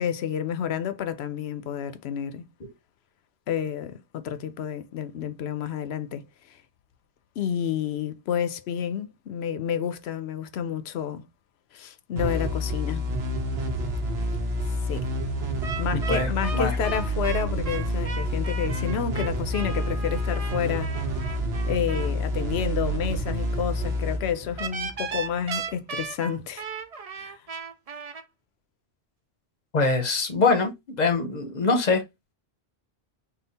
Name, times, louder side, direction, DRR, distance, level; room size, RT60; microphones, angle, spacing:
voice 1, 0.0-2.4 3.5-6.6 7.4-11.2 11.7-13.0 14.9-15.1 15.8-21.3 21.7-26.6 27.2-27.4, left 8 dB, 75° left, 0.8 m, -30 dB
sound 1, 12.1-25.5, equal, 70° right, 1.1 m, -28 dB
sound 2, 15.6-22.1 24.6-28.2, right 5 dB, 45° right, 0.6 m, -36 dB
voice 2, 15.9-16.8 29.7-32.0, left 3 dB, 45° left, 0.8 m, -24 dB
3.7 x 2.4 x 4.0 m
omnidirectional pair, 1.1 m